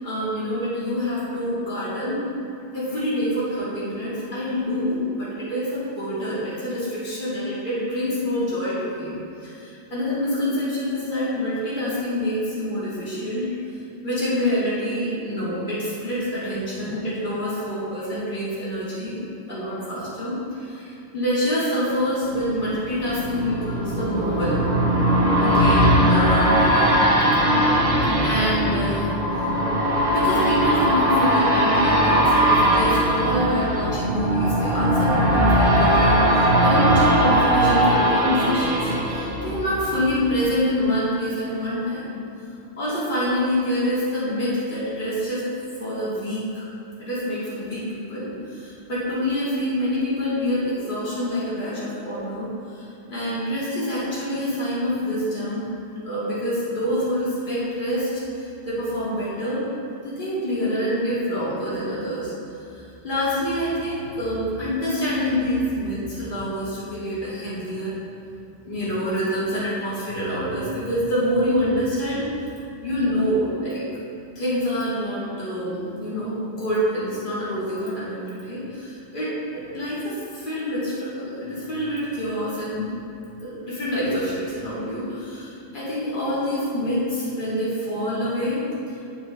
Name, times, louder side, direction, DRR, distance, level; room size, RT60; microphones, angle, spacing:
voice 1, 0.0-2.2 2.7-9.2 9.4-13.6 14.0-19.2 19.5-24.6 25.4-27.2 28.2-29.2 29.8-42.2 42.8-45.5 45.8-46.7 47.0-55.7 56.0-58.1 58.3-59.6 60.0-62.3 62.6-68.0 68.6-72.2 72.8-73.8 74.4-82.9 83.4-88.6, equal, 45° left, -10 dB, 2.4 m, -26 dB
sound 1, 22.3-40.1 40.5-40.6, right 1 dB, 55° right, 1.5 m, -20 dB
8.8 x 8.3 x 3.2 m, 2.7 s
omnidirectional pair, 1.1 m